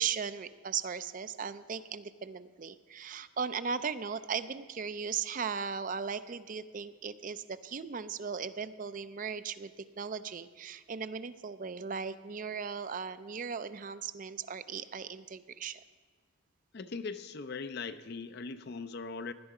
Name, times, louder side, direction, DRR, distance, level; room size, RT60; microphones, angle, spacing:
voice 1, 0.0-15.8, right 6 dB, 40° right, 13 dB, 0.4 m, -37 dB
voice 2, 16.7-19.3, left 4 dB, 50° left, 12 dB, 0.5 m, -40 dB
16.5 x 11.0 x 4.9 m, 1.5 s
head